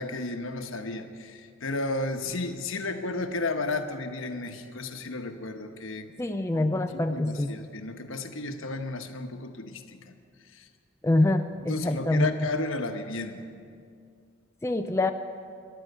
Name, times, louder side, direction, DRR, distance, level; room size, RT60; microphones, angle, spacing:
voice 1, 0.0-6.1 6.5-10.1 10.5-10.7 11.6-13.4, left 2 dB, 70° left, 6 dB, 1.1 m, -33 dB
voice 2, 6.2-7.5 11.0-12.3 14.6-15.1, left 2 dB, 15° left, 6 dB, 0.4 m, -25 dB
14.5 x 11.0 x 8.1 m, 2.3 s
head